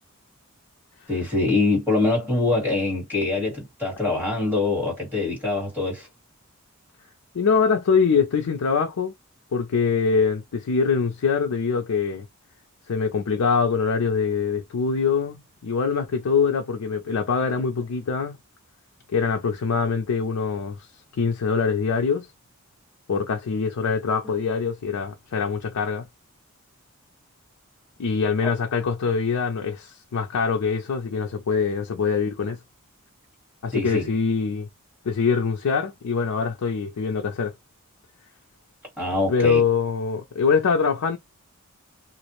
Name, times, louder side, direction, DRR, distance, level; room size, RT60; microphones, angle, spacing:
voice 1, 1.1-6.1 28.4-28.5 33.7-34.0 39.0-39.6, left 3 dB, 10° right, 1.4 m, -24 dB
voice 2, 7.3-9.1 9.5-12.3 12.9-18.4 19.1-20.8 21.2-22.3 23.1-26.1 28.0-32.6 33.6-34.7 35.0-37.5 39.3-41.2, left 5 dB, 80° left, 0.4 m, -23 dB
2.4 x 2.0 x 2.9 m
head